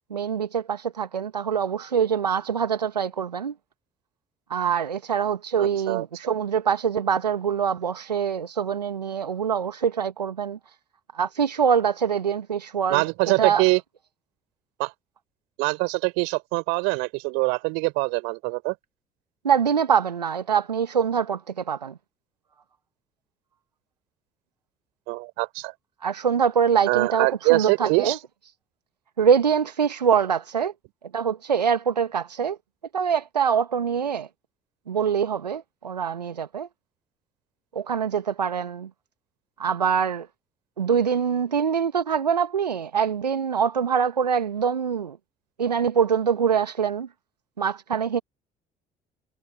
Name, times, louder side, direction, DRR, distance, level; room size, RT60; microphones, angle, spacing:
voice 1, 0.1-3.5 4.5-10.6 11.1-13.7 19.4-21.9 26.0-28.2 29.2-30.7 31.1-32.6 32.9-34.3 34.9-36.7 37.7-38.9 39.6-40.3 40.8-45.2 45.6-47.1 47.6-48.2, right 7 dB, 85° right, 1.5 m, -24 dB
voice 2, 5.6-6.0 12.9-13.8 14.8-14.9 15.6-18.7 25.1-25.7 26.9-28.2, right 35 dB, 70° right, 3.9 m, -24 dB
figure-of-eight pair, 50°, 20 cm